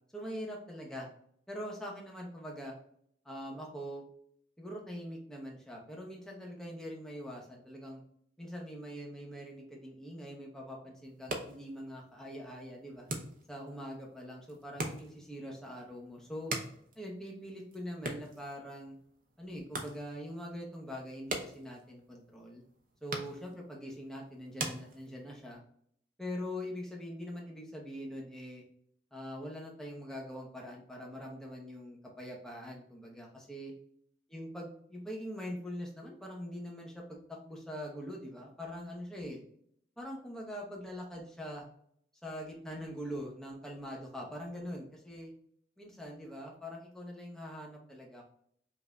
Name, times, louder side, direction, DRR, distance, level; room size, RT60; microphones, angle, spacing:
voice 1, 0.1-1.1 1.5-2.7 3.2-4.0 4.6-8.0 8.4-13.1 13.5-16.5 17.0-19.0 19.4-22.6 23.0-25.6 26.2-28.6 29.1-33.7 34.3-39.4 40.0-41.6 42.2-45.3 45.8-48.2, equal, 5° left, -2 dB, 0.9 m, -43 dB
sound 1, 11.0-25.5, right 2 dB, 50° right, 0.7 m, -44 dB
5.3 x 2.7 x 2.4 m, 0.67 s
head